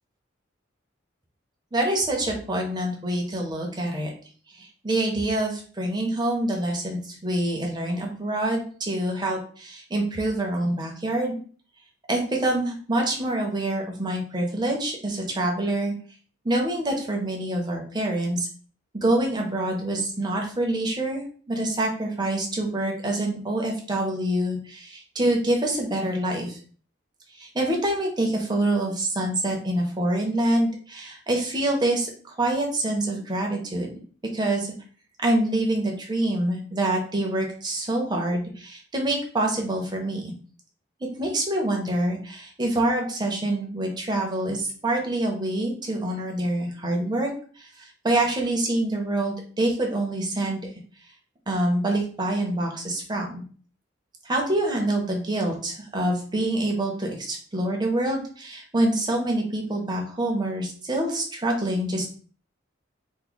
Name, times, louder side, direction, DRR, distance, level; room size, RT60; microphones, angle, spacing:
voice 1, 1.7-4.1 4.6-11.4 12.1-15.9 16.4-18.5 18.9-26.6 27.4-33.9 34.3-34.7 35.2-40.3 41.2-47.3 47.6-50.7 51.5-53.4 54.2-62.1, right 1 dB, 20° right, 0 dB, 0.7 m, -26 dB
3.0 x 2.1 x 3.9 m, 0.43 s
head